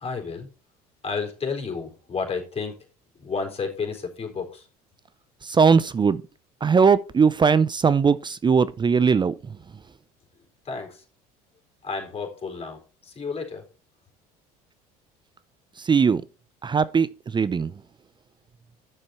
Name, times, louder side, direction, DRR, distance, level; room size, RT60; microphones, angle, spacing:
voice 1, 0.0-0.5 1.0-2.7 3.2-4.6 10.7-10.9 11.8-12.8 13.2-13.6, left 5 dB, 30° left, 4.2 m, -31 dB
voice 2, 5.5-6.2 6.6-9.3 15.9-16.2 16.6-17.1 17.3-17.7, right 5 dB, 25° right, 0.6 m, -19 dB
9.9 x 6.7 x 4.3 m
hypercardioid pair, 70°, 20 cm